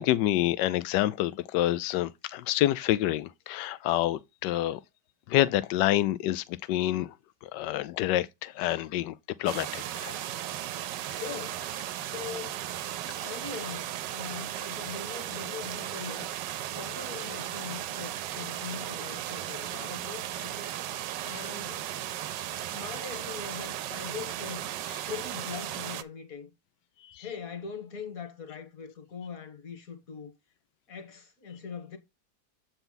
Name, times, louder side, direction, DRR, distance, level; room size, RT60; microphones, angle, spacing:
voice 1, 0.0-4.8 5.3-7.1 7.5-10.2 27.1-27.2, left 14 dB, 80° left, 1.2 m, -27 dB
sound 1, 9.5-26.0, right 12 dB, 85° right, 1.3 m, -36 dB
voice 2, 11.1-11.7 12.0-12.7 13.2-16.3 16.6-20.8 21.2-21.9 22.7-24.7 25.1-26.5 27.2-30.3 30.9-32.0, left 6 dB, 55° left, 1.8 m, -41 dB
8.0 x 4.4 x 3.8 m
omnidirectional pair, 1.9 m